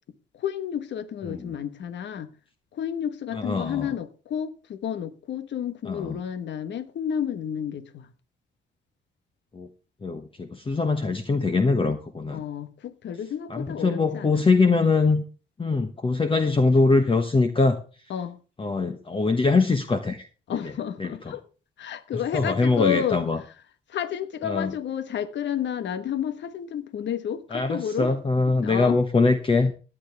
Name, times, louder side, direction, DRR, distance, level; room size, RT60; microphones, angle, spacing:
voice 1, 0.3-2.3 2.7-8.1 12.3-14.5 18.1-18.4 20.5-21.4 21.8-23.3 23.9-28.1 28.6-29.0, left 9 dB, 65° left, 1.2 m, -31 dB
voice 2, 3.3-3.9 5.8-6.2 9.5-9.7 10.0-12.4 13.5-15.2 15.6-17.8 18.6-20.6 21.0-21.3 22.1-23.4 24.4-24.7 27.5-29.7, left 3 dB, 25° left, 1.1 m, -23 dB
16.0 x 10.0 x 3.4 m
cardioid pair, 90°, 20 cm